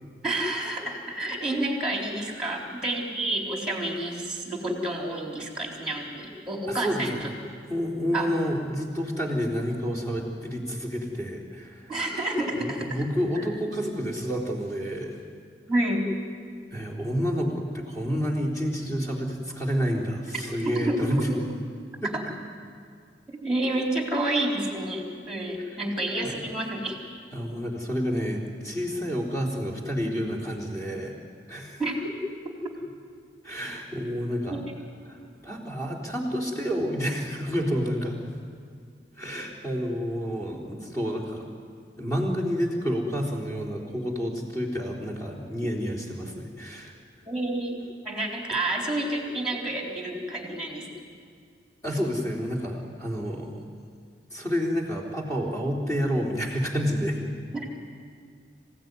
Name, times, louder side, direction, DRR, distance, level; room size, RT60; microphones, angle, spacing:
voice 1, 0.2-7.3 8.1-8.3 11.9-13.1 13.4-13.5 15.7-16.1 20.3-20.4 20.7-21.4 22.1-22.2 23.4-27.0 31.8-31.9 34.5-34.6 47.3-50.9 57.5-57.6, right 1 dB, 5° right, 0 dB, 4.0 m, -29 dB
voice 2, 6.7-7.2 7.7-11.9 12.6-15.2 16.7-21.3 22.0-22.1 26.2-26.3 27.3-31.2 31.5-31.8 33.4-34.6 35.1-38.3 39.2-41.5 42.0-46.9 51.8-53.6 54.3-57.2, equal, 20° left, -2 dB, 3.7 m, -29 dB
27.0 x 16.5 x 9.6 m, 2.1 s
head